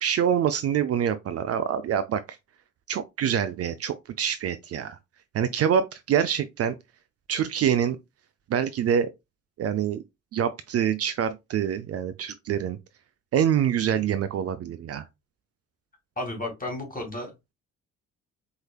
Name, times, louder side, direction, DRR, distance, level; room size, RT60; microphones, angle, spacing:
voice 1, 0.0-2.2 2.9-5.0 5.3-6.7 7.3-8.0 8.5-9.1 9.6-10.0 10.3-12.8 13.3-15.0, right 8 dB, 40° right, 0.5 m, -25 dB
voice 2, 16.2-17.5, left 1 dB, 25° left, 2.1 m, -33 dB
4.7 x 3.2 x 2.3 m
hypercardioid pair, 45°, 36 cm